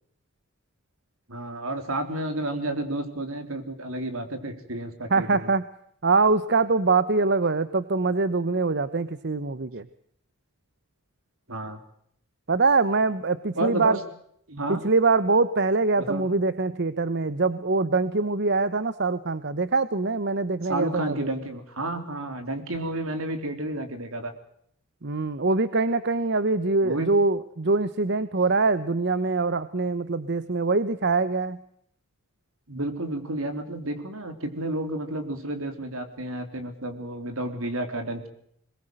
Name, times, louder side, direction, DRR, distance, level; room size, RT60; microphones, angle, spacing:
voice 1, 1.3-5.5 11.5-11.8 13.6-14.0 14.5-14.8 16.1-16.4 20.7-24.3 26.8-27.1 32.7-38.3, right 1 dB, 70° right, 7 dB, 3.8 m, -31 dB
voice 2, 5.1-5.6 6.0-9.8 12.5-14.0 14.7-21.3 25.0-31.6, right 3 dB, 50° right, 14 dB, 1.0 m, -23 dB
22.5 x 21.5 x 7.8 m, 0.69 s
head